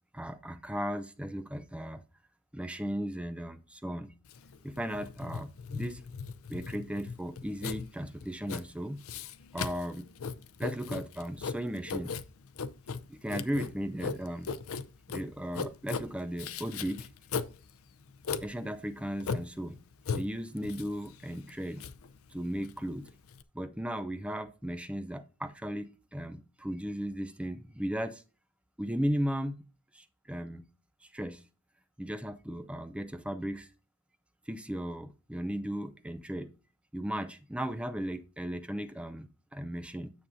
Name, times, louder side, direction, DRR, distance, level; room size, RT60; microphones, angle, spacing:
voice 1, 0.1-2.0 2.5-4.1 4.6-6.0 6.5-9.0 9.5-10.1 10.6-12.2 13.1-14.5 15.1-17.1 18.4-19.8 20.1-21.8 22.3-23.1 23.5-28.2 28.8-29.6 29.9-30.6 31.0-31.4 32.0-33.7 34.5-36.5 36.9-40.1, equal, 5° right, 0.5 m, -36 dB
Writing, 4.3-23.4, left 5 dB, 70° left, 0.5 m, -38 dB
9.8 x 7.0 x 2.6 m
head